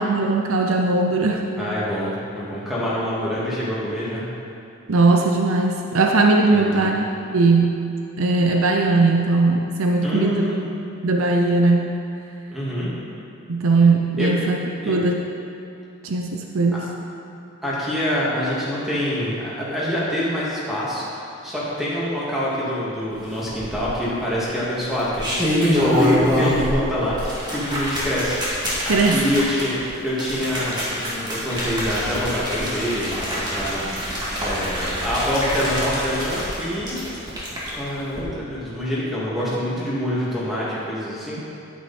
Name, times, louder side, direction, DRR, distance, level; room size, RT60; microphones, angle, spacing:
voice 1, 0.0-1.4 4.9-7.0 7.3-7.8 8.2-10.5 11.0-11.9 13.5-14.6 14.9-15.2 16.0-16.9 28.9-29.2, right 3 dB, 80° right, 2 dB, 0.6 m, -19 dB
voice 2, 1.6-4.3 6.5-7.0 10.0-10.7 12.5-13.0 14.2-14.4 14.8-15.0 16.7-16.8 17.6-37.0 37.7-41.4, equal, ahead, -9 dB, 2.3 m, -26 dB
sound 1, 23.5-24.1 24.9-26.8 27.1-37.7 38.1-38.2, equal, 20° right, 2.0 m, -25 dB
9.5 x 9.5 x 4.3 m, 2.6 s
head